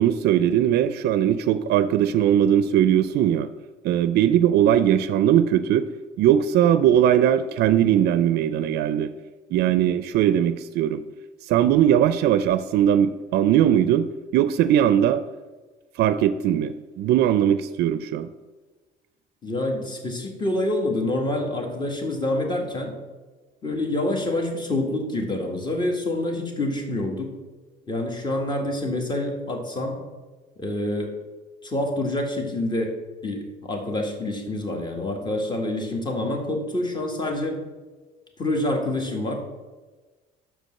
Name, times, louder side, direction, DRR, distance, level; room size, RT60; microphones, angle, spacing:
voice 1, 0.0-3.5 3.8-5.9 6.2-9.1 9.5-11.0 11.5-14.1 14.3-15.2 16.0-18.3, right 10 dB, 75° right, 12 dB, 0.4 m, -20 dB
voice 2, 19.4-22.9 23.6-27.3 27.9-30.0 30.6-31.1 31.6-32.9 33.2-37.6 38.4-39.4, left 1 dB, 25° left, 2 dB, 1.7 m, -27 dB
6.2 x 5.2 x 6.4 m, 1.3 s
cardioid pair, 110°, 17 cm